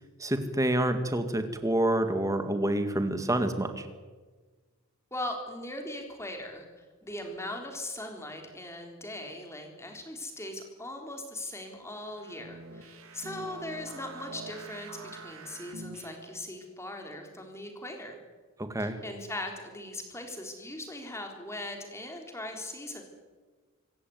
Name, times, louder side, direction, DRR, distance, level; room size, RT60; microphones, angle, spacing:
voice 1, 0.2-3.9 18.6-19.0, right 1 dB, 15° right, 8 dB, 2.0 m, -28 dB
voice 2, 5.1-6.7 7.0-18.2 18.8-23.0, left 1 dB, 10° left, 3 dB, 3.7 m, -39 dB
sound 1, 12.0-16.5, right 3 dB, 65° right, 3.0 m, -45 dB
26.0 x 15.0 x 9.5 m, 1.4 s
head